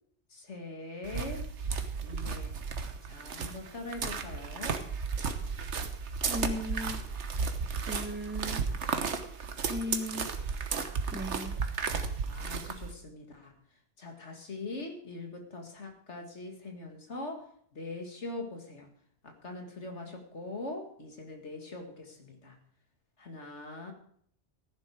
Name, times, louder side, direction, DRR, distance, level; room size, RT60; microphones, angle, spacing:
voice 1, 0.3-1.5 2.0-2.5 3.0-4.8 12.3-13.5 14.0-17.5 17.7-18.9 19.2-22.6 23.2-23.9, left 2 dB, 85° left, 3 dB, 2.4 m, -42 dB
sound 1, 1.0-12.9, right 5 dB, 85° right, 1.4 m, -34 dB
voice 2, 6.3-7.0 7.8-8.7 9.6-10.3 11.1-11.6, left 1 dB, 10° right, 11 dB, 0.6 m, -37 dB
15.0 x 10.5 x 4.9 m, 0.63 s
omnidirectional pair, 1.1 m